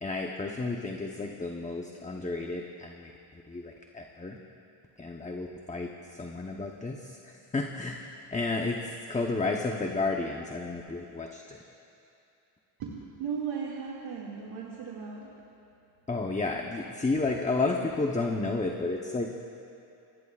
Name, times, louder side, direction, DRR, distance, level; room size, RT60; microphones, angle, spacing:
voice 1, 0.0-4.4 5.0-8.0 8.3-11.6 16.1-19.3, left 3 dB, 15° left, 1 dB, 0.8 m, -32 dB
voice 2, 12.8-15.3 17.1-17.3, right 6 dB, 90° right, -5 dB, 2.3 m, -37 dB
28.5 x 20.0 x 2.4 m, 2.7 s
cardioid pair, 120°, 50 cm